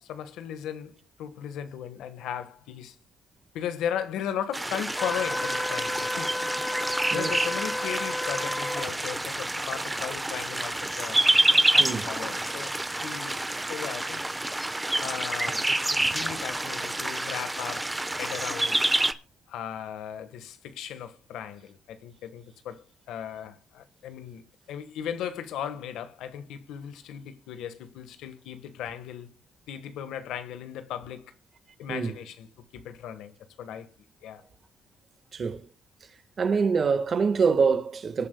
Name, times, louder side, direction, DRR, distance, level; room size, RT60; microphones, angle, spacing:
voice 1, 0.0-3.0 3.5-11.2 11.5-12.7 13.0-13.4 13.7-14.2 15.0-18.8 19.5-29.3 29.7-31.3 31.8-32.5 32.7-33.9 34.2-34.4, left 9 dB, 85° left, 1.3 m, -37 dB
sound 1, 4.5-19.1, right 1 dB, 10° right, 0.9 m, -28 dB
Wind instrument woodwind instrument, 4.9-8.9, left 2 dB, 20° left, 0.8 m, -32 dB
voice 2, 7.1-7.5 11.8-12.1 31.9-32.1 35.3-35.7 36.4-38.3, right 5 dB, 45° right, 1.4 m, -25 dB
24.5 x 8.9 x 2.2 m
cardioid pair, 90°, 0 cm